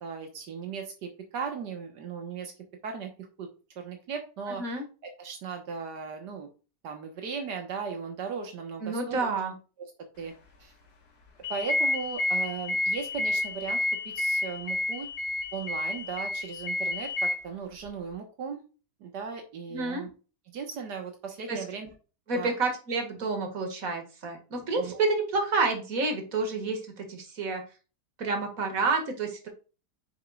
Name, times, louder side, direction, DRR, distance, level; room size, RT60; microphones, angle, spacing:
voice 1, 0.0-2.5 2.8-3.5 3.8-4.6 5.0-6.5 6.8-9.3 10.2-10.3 10.6-10.7 11.5-13.8 14.1-15.1 15.5-18.6 19.0-20.1 20.5-21.9 22.3-22.5 24.5-25.0, right 6 dB, 85° right, 4 dB, 1.9 m, -37 dB
voice 2, 4.5-4.9 8.8-9.5 19.7-20.1 21.5-21.6 22.3-27.6 28.2-29.5, right 3 dB, 55° right, 4 dB, 2.3 m, -29 dB
sound 1, 11.4-17.3, left 2 dB, 70° left, 1.9 m, -30 dB
9.3 x 6.5 x 2.4 m, 0.34 s
omnidirectional pair, 1.8 m